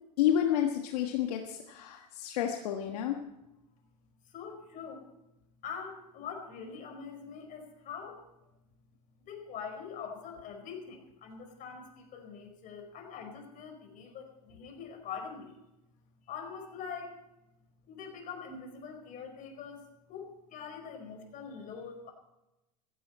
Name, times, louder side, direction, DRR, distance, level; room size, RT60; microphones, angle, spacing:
voice 1, 0.2-3.2, left 10 dB, 70° left, 3 dB, 1.5 m, -30 dB
voice 2, 4.2-5.1 5.6-8.2 9.3-15.6 16.3-17.2 17.9-22.1, left 6 dB, 40° left, 4 dB, 4.8 m, -44 dB
15.5 x 15.0 x 4.4 m, 0.95 s
hypercardioid pair, 105°, 20 cm